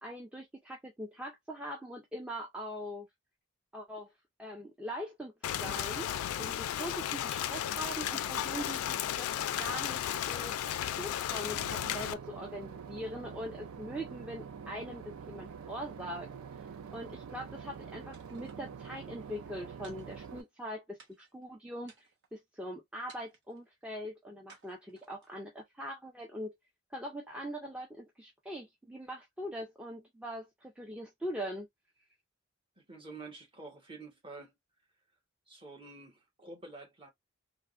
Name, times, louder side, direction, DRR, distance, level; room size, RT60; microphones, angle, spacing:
voice 1, 0.0-3.1 3.7-4.1 4.4-6.1 6.4-9.3 9.6-10.6 10.9-26.6 26.9-31.7, equal, 5° right, 0.4 m, -42 dB
Rain, 5.4-12.1, left 10 dB, 85° left, 0.3 m, -34 dB
Boat Water vehicle / Engine, 11.4-20.4, right 6 dB, 70° right, 0.4 m, -46 dB
sound 1, 18.1-19.0 19.8-20.6 21.0-21.4 21.8-22.4 23.1-23.6 24.5-25.4, right 5 dB, 55° right, 0.9 m, -60 dB
voice 2, 32.8-34.5 35.5-37.1, right 3 dB, 25° right, 0.9 m, -48 dB
3.3 x 2.0 x 2.4 m
head